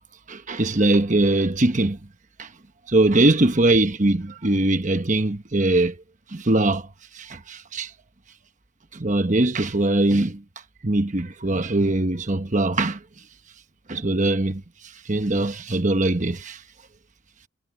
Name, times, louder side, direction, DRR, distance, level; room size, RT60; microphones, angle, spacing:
voice 1, 0.3-2.0 2.4-2.5 2.9-6.0 6.3-6.9 7.1-7.9 8.9-10.4 10.8-13.0 13.9-14.6 15.0-16.6, right 2 dB, 35° right, 1.1 m, -21 dB
head